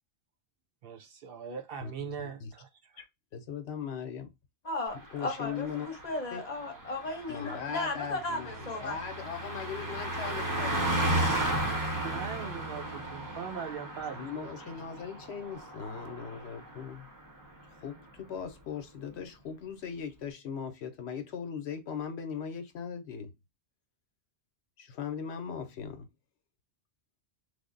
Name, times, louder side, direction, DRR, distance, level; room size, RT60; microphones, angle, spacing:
voice 1, 0.8-3.0 12.0-14.2, right 6 dB, 60° right, 0.8 m, -40 dB
voice 2, 1.8-2.5 3.0-3.1 3.3-4.3 5.1-5.9 6.3-6.4 7.3-11.4 14.1-17.1 17.8-23.3 24.8-26.1, left 7 dB, 85° left, 1.0 m, -39 dB
voice 3, 4.6-9.0, left 2 dB, 40° left, 1.0 m, -35 dB
Car passing by, 5.0-16.9 17.2-17.4, right 1 dB, 20° right, 0.7 m, -34 dB
3.4 x 2.0 x 3.7 m
omnidirectional pair, 1.1 m